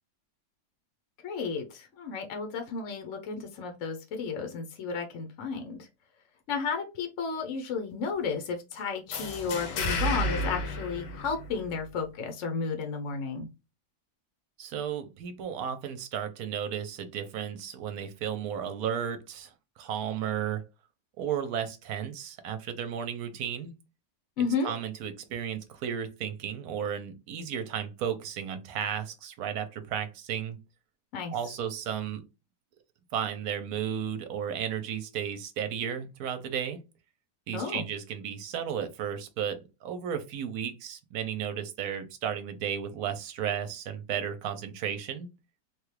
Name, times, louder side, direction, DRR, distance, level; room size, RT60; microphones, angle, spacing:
voice 1, 1.2-5.9 6.5-13.5 24.4-24.7 31.1-31.5 37.5-37.9, left 5 dB, 60° left, 4 dB, 0.9 m, -33 dB
sound 1, 9.1-11.8, left 1 dB, 80° left, 1.4 m, -31 dB
voice 2, 14.6-20.6 21.2-23.7 24.6-30.6 31.3-32.2 33.1-36.8 37.5-45.3, right 8 dB, 65° right, 8 dB, 1.1 m, -34 dB
3.5 x 2.3 x 3.2 m, 0.26 s
omnidirectional pair, 1.8 m